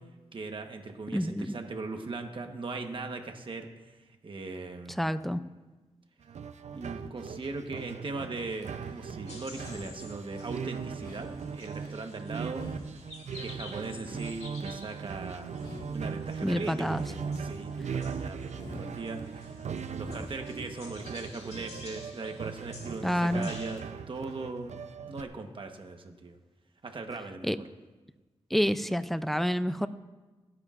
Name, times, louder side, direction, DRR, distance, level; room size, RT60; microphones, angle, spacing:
voice 1, 0.3-4.0 4.2-5.0 6.7-12.6 13.4-15.6 15.9-19.6 19.9-23.8 24.1-24.7 25.1-26.4 26.8-27.7, right 3 dB, 45° right, 5 dB, 1.1 m, -39 dB
voice 2, 1.1-1.5 5.0-5.4 16.4-17.0 23.0-23.5 27.4-27.6 28.5-29.9, equal, ahead, 12 dB, 0.4 m, -28 dB
sound 1, 6.2-25.2, right 6 dB, 75° right, 0.6 m, -39 dB
sound 2, 8.6-9.1 9.5-10.6 11.0-12.1 12.5-13.6 14.0-15.1 15.5-16.6 17.0-18.1 18.5-19.5 19.9-20.6, left 1 dB, 40° left, 1.7 m, -48 dB
sound 3, 9.3-23.8, left 3 dB, 65° left, 2.0 m, -51 dB
29.5 x 9.8 x 2.5 m, 1.2 s
wide cardioid pair, 135°, 12 cm